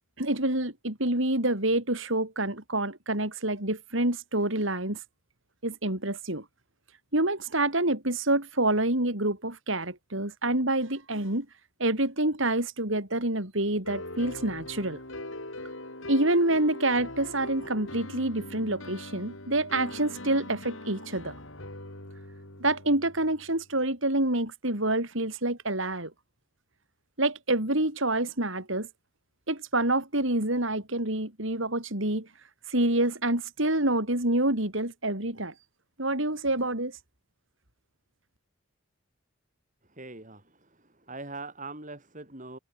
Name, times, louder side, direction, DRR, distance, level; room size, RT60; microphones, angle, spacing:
voice 1, 0.2-5.0 5.6-6.5 7.1-11.5 11.8-15.0 16.1-21.4 22.6-26.1 27.2-28.9 29.5-32.3 32.7-35.5 36.0-37.0, right 1 dB, 65° right, 5.3 m, -27 dB
sound 1, 13.9-23.6, left 1 dB, 65° left, 7.5 m, -41 dB
voice 2, 39.9-42.6, right 3 dB, 35° right, 6.3 m, -42 dB
head